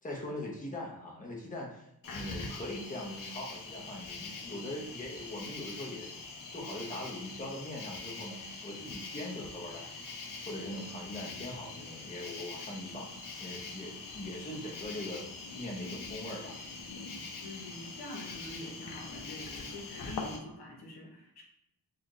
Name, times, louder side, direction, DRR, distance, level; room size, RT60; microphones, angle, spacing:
voice 1, 0.0-6.1 6.5-9.9 10.5-13.1 13.4-15.2 15.5-16.6 17.1-17.3, left 1 dB, 20° left, -2 dB, 0.9 m, -41 dB
Cricket, 2.0-20.4, left 3 dB, 60° left, 0.7 m, -43 dB
voice 2, 17.4-21.4, left 2 dB, 85° left, 0 dB, 1.0 m, -45 dB
4.2 x 2.5 x 3.0 m, 0.80 s
wide cardioid pair, 110°, 37 cm